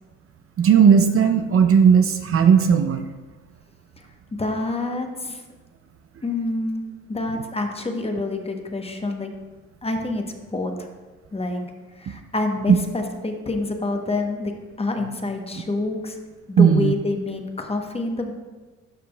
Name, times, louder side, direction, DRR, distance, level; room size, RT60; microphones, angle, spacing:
voice 1, 0.6-3.1 12.7-12.8 16.6-16.9, right 7 dB, 45° right, 8 dB, 0.5 m, -16 dB
voice 2, 4.4-5.4 6.2-6.8 7.1-9.3 9.8-10.2 10.5-10.9 11.3-11.6 12.0-16.2 16.5-18.3, left 2 dB, 20° left, 4 dB, 0.9 m, -27 dB
12.0 x 5.1 x 2.3 m, 1.3 s
supercardioid pair, 75°, 32 cm